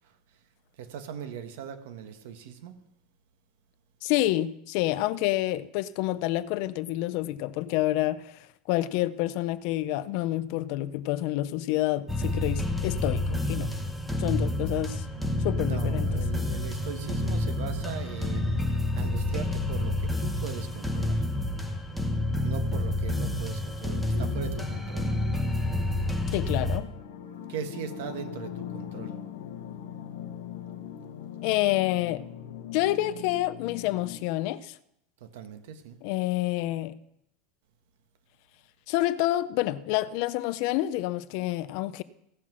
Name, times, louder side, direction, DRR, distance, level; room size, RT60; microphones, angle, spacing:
voice 1, 0.8-2.7 15.2-15.3 15.6-18.6 18.9-21.2 22.4-25.1 27.5-29.1 35.2-36.0, right 8 dB, 65° right, 1.4 m, -39 dB
voice 2, 4.0-8.4 8.7-13.7 14.2-15.0 15.4-16.2 26.3-26.9 31.4-32.2 32.7-34.8 36.0-36.9 38.9-42.0, left 15 dB, 45° left, 0.4 m, -28 dB
sound 1, 12.1-26.8, left 1 dB, ahead, 0.8 m, -29 dB
sound 2, 24.1-34.2, left 9 dB, 85° left, 1.2 m, -41 dB
16.5 x 5.8 x 6.2 m
supercardioid pair, 180°, 0 cm